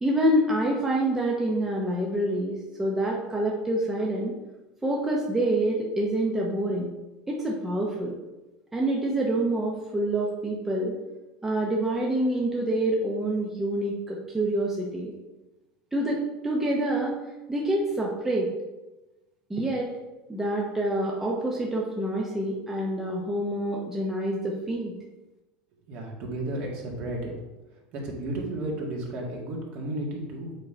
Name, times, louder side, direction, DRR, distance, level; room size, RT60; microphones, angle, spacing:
voice 1, 0.0-4.3 4.8-6.9 7.3-8.1 8.7-10.9 11.4-15.1 15.9-16.2 16.4-17.2 17.5-18.5 19.5-19.9 20.3-24.9, right 1 dB, 10° right, -3 dB, 0.8 m, -27 dB
voice 2, 25.9-27.3 27.9-30.6, right 1 dB, 45° right, -1 dB, 1.9 m, -33 dB
7.4 x 3.8 x 4.4 m, 1.1 s
supercardioid pair, 140°, 4 cm